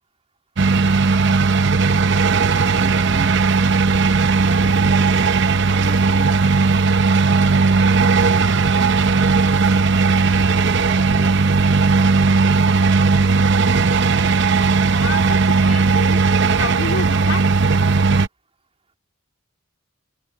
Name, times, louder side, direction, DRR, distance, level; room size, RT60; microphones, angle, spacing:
sound 1, 0.6-18.3, right 4 dB, 55° right, 0.8 m, -16 dB
voice 1, 2.6-7.9 8.5-10.2 10.5-12.7 13.0-13.2, right 2 dB, 30° right, 3.1 m, -40 dB
voice 2, 15.0-16.2 16.5-17.4, left 3 dB, 85° left, 3.5 m, -29 dB
open air
head